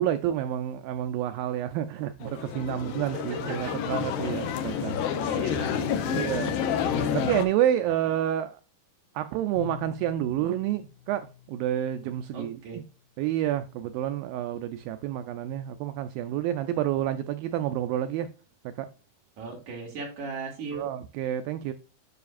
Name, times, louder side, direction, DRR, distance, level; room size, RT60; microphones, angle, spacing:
voice 1, 0.0-5.2 6.1-6.5 7.1-8.6 9.2-12.8 13.2-18.3 18.8-18.9 20.7-21.7, right 11 dB, 85° right, 2.1 m, -29 dB
sound 1, 2.2-7.5, left 8 dB, 75° left, 2.6 m, -29 dB
voice 2, 5.3-6.2 7.0-7.2 12.3-12.8 19.4-20.9, right 4 dB, 55° right, 3.4 m, -38 dB
Bowed string instrument, 9.5-12.4, left 8 dB, 35° left, 1.5 m, -45 dB
9.5 x 5.8 x 2.4 m
omnidirectional pair, 4.6 m